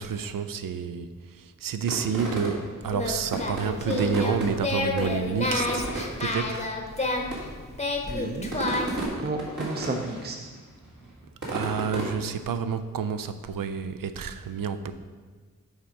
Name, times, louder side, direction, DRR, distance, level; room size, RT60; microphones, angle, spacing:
voice 1, 0.0-5.9 6.2-6.7 11.5-14.9, right 6 dB, 85° right, 11 dB, 0.5 m, -29 dB
sound 1, 1.9-2.8 3.3-4.7 5.0-6.3 7.0-7.1 7.3-7.6 8.3-10.3 10.5-12.3, right 2 dB, 60° right, 1.9 m, -33 dB
Singing, 2.8-9.1, left 2 dB, 20° left, 0.8 m, -30 dB
voice 2, 8.1-8.5 9.2-10.5, right 2 dB, 30° right, 3 dB, 0.6 m, -32 dB
7.1 x 3.6 x 5.2 m, 1.4 s
wide cardioid pair, 85°, 33 cm